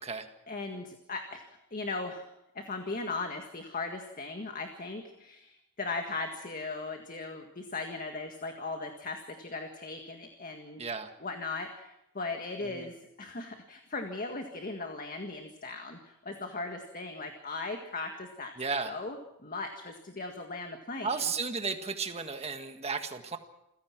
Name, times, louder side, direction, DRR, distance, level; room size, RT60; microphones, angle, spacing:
voice 1, 0.5-10.8 11.2-18.5 18.8-19.2 19.4-21.2, left 3 dB, 40° left, 4 dB, 1.8 m, -38 dB
voice 2, 10.8-11.1 12.7-12.9 18.6-19.0 21.0-23.4, right 4 dB, 30° right, 7 dB, 1.7 m, -34 dB
28.0 x 16.5 x 6.1 m, 0.86 s
head